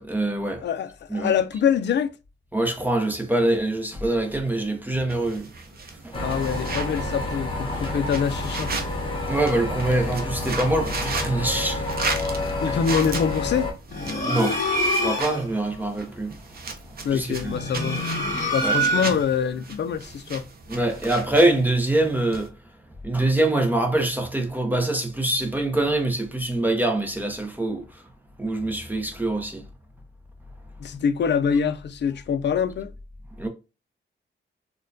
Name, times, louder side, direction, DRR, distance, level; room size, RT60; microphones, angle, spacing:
voice 1, 0.0-0.6 1.1-1.3 2.5-5.5 6.0-6.2 9.3-11.8 12.7-12.8 14.2-14.6 14.9-16.3 17.1-17.5 18.3-18.8 20.7-22.5 23.0-28.0 28.4-29.6 33.4-33.5, right 2 dB, 10° right, 0.7 m, -24 dB
voice 2, 0.6-2.1 6.2-8.7 12.6-13.7 17.0-18.0 18.5-20.5 30.8-32.9, left 7 dB, 60° left, 0.4 m, -25 dB
sound 1, 5.1-22.5, right 4 dB, 45° right, 0.6 m, -36 dB
sound 2, 6.1-13.7, left 2 dB, 25° left, 1.0 m, -29 dB
sound 3, 13.9-15.5 17.4-19.4, equal, 40° left, 1.8 m, -25 dB
4.3 x 2.3 x 2.5 m
wide cardioid pair, 175°, 21 cm